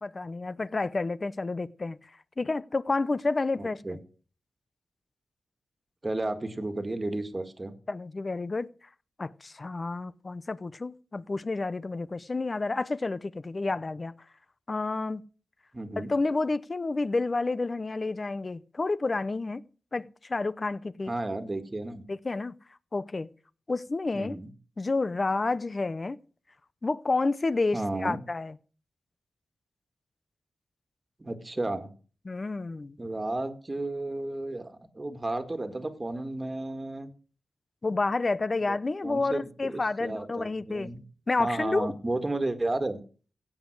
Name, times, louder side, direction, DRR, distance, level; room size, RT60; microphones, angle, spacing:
voice 1, 0.0-2.1 2.4-4.0 7.9-8.7 9.2-14.2 14.7-15.2 16.0-19.6 19.9-21.1 22.1-22.5 22.9-23.3 23.7-24.4 24.8-26.2 26.8-28.5 32.3-33.0 37.8-40.9 41.3-41.9, left 3 dB, 35° left, 0.8 m, -30 dB
voice 2, 3.6-4.0 6.0-7.7 15.7-16.1 21.1-22.0 24.1-24.5 27.7-28.2 31.2-31.9 33.0-37.1 38.6-38.8 39.0-41.0 41.4-43.0, right 2 dB, 25° right, 1.9 m, -33 dB
16.5 x 7.2 x 6.2 m
wide cardioid pair, 95°, 0 cm